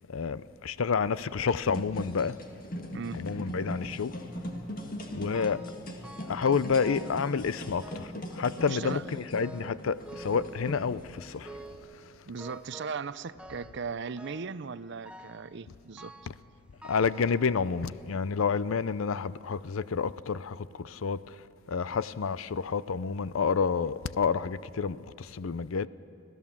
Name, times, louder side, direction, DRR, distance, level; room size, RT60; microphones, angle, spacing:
voice 1, 0.1-2.4 3.1-4.5 5.1-5.7 6.2-12.3 16.3-16.4 16.8-25.9, left 5 dB, 80° left, 0.5 m, -30 dB
sound 1, 1.7-11.8, equal, 45° left, 1.8 m, -40 dB
sound 2, 5.3-5.8 6.0-7.3 7.8-8.3 8.6-9.1 9.4-11.0 11.5-11.9 12.4-13.1 13.4-13.8 14.2-14.6 15.1-15.5 16.0-16.4 16.8-17.9 18.5-18.6 19.4-19.5 20.0-20.1, right 1 dB, 5° right, 0.6 m, -49 dB
voice 2, 8.7-9.0 12.3-16.1, right 5 dB, 55° right, 0.6 m, -37 dB
26.0 x 16.5 x 7.3 m
head